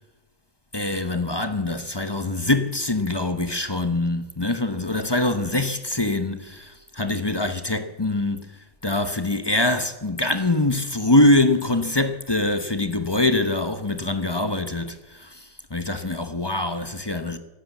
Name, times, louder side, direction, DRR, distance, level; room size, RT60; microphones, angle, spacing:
voice 1, 0.7-8.4 8.8-15.5 15.7-17.4, left 2 dB, 20° left, 0.8 m, -23 dB
15.5 x 12.0 x 7.2 m
omnidirectional pair, 1.5 m